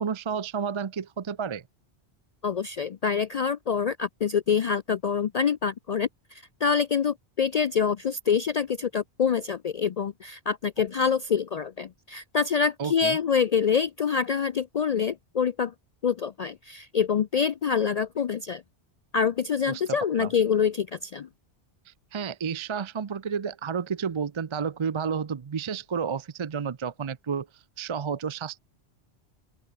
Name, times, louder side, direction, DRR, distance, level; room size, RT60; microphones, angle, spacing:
voice 1, 0.0-1.6 12.8-13.2 19.7-20.3 21.9-28.6, right 6 dB, 40° right, 0.4 m, -31 dB
voice 2, 2.4-15.7 16.0-18.6 19.1-21.3, left 6 dB, 55° left, 0.4 m, -26 dB
open air
omnidirectional pair, 1.1 m